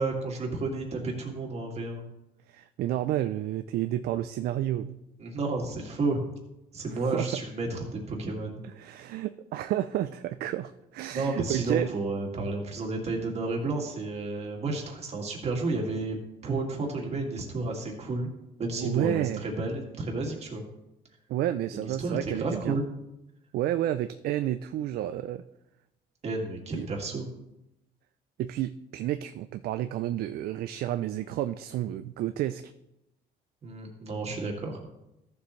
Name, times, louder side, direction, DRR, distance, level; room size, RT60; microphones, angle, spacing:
voice 1, 0.0-2.0 5.2-6.2 6.7-8.6 11.1-16.2 16.4-18.3 18.6-20.6 21.8-22.8 26.2-27.3 33.6-34.8, right 3 dB, 40° right, 1 dB, 2.2 m, -31 dB
voice 2, 2.5-5.0 6.9-7.3 8.8-11.9 18.8-19.5 21.3-22.8 23.5-25.4 26.7-26.9 28.4-32.7, right 12 dB, 65° right, 11 dB, 0.4 m, -30 dB
14.5 x 7.1 x 3.2 m, 0.91 s
cardioid pair, 110°, 17 cm